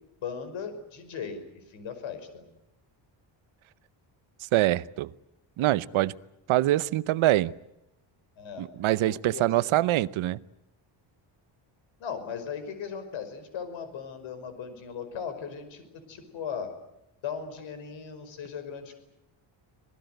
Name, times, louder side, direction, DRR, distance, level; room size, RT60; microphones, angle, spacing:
voice 1, 0.2-2.4 8.4-8.7 9.0-9.5 12.0-16.7 17.2-19.0, left 7 dB, 70° left, 5.4 m, -38 dB
voice 2, 4.5-5.1 5.6-6.1 6.5-7.5 8.6-10.4, right 15 dB, 80° right, 0.9 m, -24 dB
26.5 x 19.0 x 9.1 m
cardioid pair, 175°, 48 cm